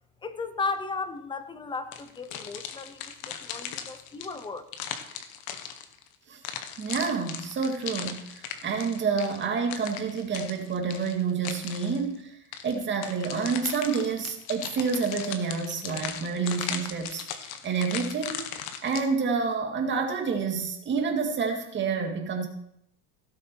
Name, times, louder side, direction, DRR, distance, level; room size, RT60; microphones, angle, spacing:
voice 1, 0.2-4.6, left 4 dB, 10° left, 11 dB, 0.8 m, -35 dB
sound 1, 1.9-6.1 6.4-12.0 12.5-19.0, left 9 dB, 55° left, 1.4 m, -38 dB
voice 2, 6.8-12.3 12.6-18.4 18.8-22.5, right 5 dB, 25° right, 3 dB, 2.1 m, -28 dB
16.5 x 7.1 x 4.6 m, 0.75 s
cardioid pair, 150°, 41 cm